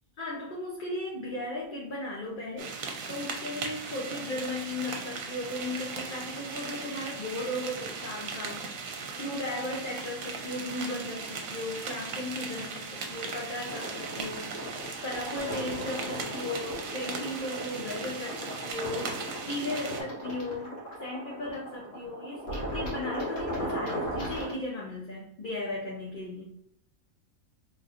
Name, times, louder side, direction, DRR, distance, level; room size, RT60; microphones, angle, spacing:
voice 1, 0.2-26.4, left 2 dB, 45° left, -4 dB, 0.8 m, -36 dB
sound 1, 2.6-20.0, right 4 dB, 70° right, 1.1 m, -38 dB
sound 2, 13.6-24.5, equal, 60° left, 1.7 m, -37 dB
4.2 x 3.4 x 2.5 m, 0.67 s
omnidirectional pair, 1.5 m